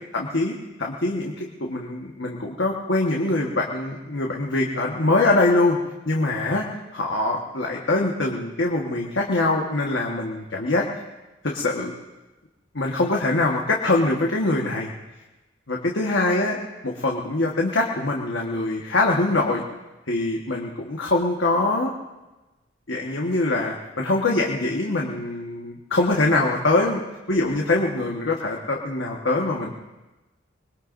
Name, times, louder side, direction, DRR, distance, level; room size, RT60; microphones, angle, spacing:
voice 1, 0.1-0.5 0.8-5.8 6.0-6.7 6.9-10.9 11.4-11.9 12.7-14.9 15.7-16.6 16.8-19.6 20.1-21.9 22.9-27.0 27.3-29.7, left 2 dB, 70° left, -1 dB, 1.5 m, -23 dB
25.5 x 21.5 x 2.7 m, 1.1 s
head